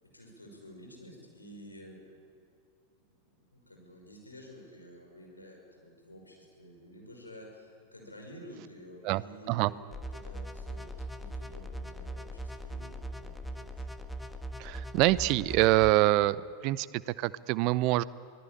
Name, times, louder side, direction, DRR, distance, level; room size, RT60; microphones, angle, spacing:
voice 1, 0.0-2.0 3.1-3.2 3.5-9.7 10.1-13.9, equal, 80° left, 1 dB, 5.9 m, -51 dB
sound 1, 9.9-15.9, right 1 dB, 5° left, 1.5 m, -40 dB
voice 2, 14.6-18.0, right 18 dB, 40° right, 19 dB, 0.6 m, -25 dB
24.5 x 18.5 x 8.8 m, 2.2 s
figure-of-eight pair, 90°, 0 cm